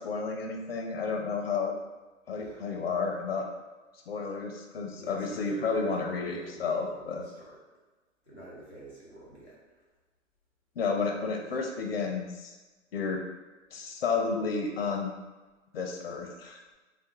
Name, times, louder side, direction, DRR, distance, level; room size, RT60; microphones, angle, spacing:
voice 1, 0.0-1.7 2.3-3.5 4.1-7.2 10.8-12.5 12.9-13.2 13.7-15.1 15.7-16.6, left 4 dB, 50° left, 2 dB, 0.5 m, -31 dB
voice 2, 2.4-2.8 5.0-7.6 8.2-9.8 11.1-11.5, right 1 dB, 10° right, -15 dB, 0.4 m, -48 dB
3.3 x 2.1 x 3.0 m, 1.2 s
figure-of-eight pair, 130°, 39 cm